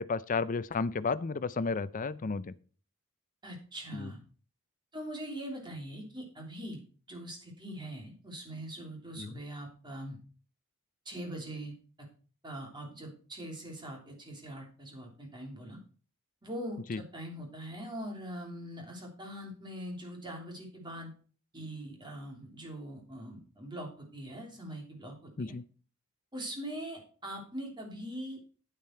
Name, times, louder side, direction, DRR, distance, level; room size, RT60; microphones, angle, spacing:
voice 1, 0.0-2.5 3.9-4.1 9.2-9.4 16.9-17.0 25.4-25.6, left 4 dB, 35° left, 16 dB, 0.5 m, -32 dB
voice 2, 3.4-4.2 4.9-6.8 7.1-10.2 11.0-12.1 12.4-15.8 16.4-21.1 21.5-25.5 26.3-28.4, right 1 dB, 20° right, 1 dB, 3.0 m, -42 dB
9.2 x 9.0 x 4.4 m, 0.41 s
head